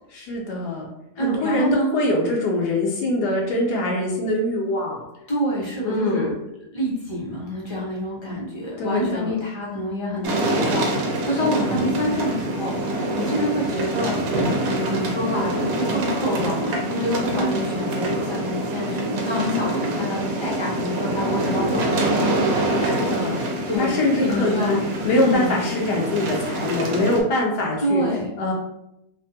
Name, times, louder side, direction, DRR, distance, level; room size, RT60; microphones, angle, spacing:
voice 1, 0.1-0.9 1.2-5.1 5.8-6.3 8.8-9.3 11.4-11.8 17.3-17.6 22.8-23.4 23.8-24.8 25.0-28.0 28.4-28.5, left 1 dB, 75° left, -1 dB, 1.2 m, -23 dB
voice 2, 1.2-1.9 5.3-6.3 6.7-14.1 14.6-22.1 23.7-23.9 24.2-24.8 25.1-25.8 27.8-28.3, equal, 30° left, -6 dB, 0.5 m, -27 dB
sound 1, 10.2-27.2, right 1 dB, 70° right, 0.9 m, -25 dB
3.3 x 2.1 x 2.7 m, 0.85 s
omnidirectional pair, 1.8 m